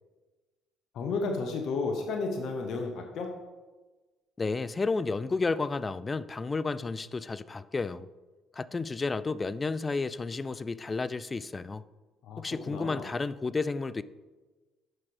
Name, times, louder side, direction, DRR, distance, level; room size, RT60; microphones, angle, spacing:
voice 1, 0.9-3.3 12.2-13.1, left 3 dB, 65° left, 3 dB, 0.9 m, -32 dB
voice 2, 4.4-8.1 8.5-11.8 12.4-14.0, left 3 dB, 30° left, 17 dB, 0.3 m, -31 dB
9.0 x 6.1 x 3.3 m, 1.3 s
supercardioid pair, 65°, 0 cm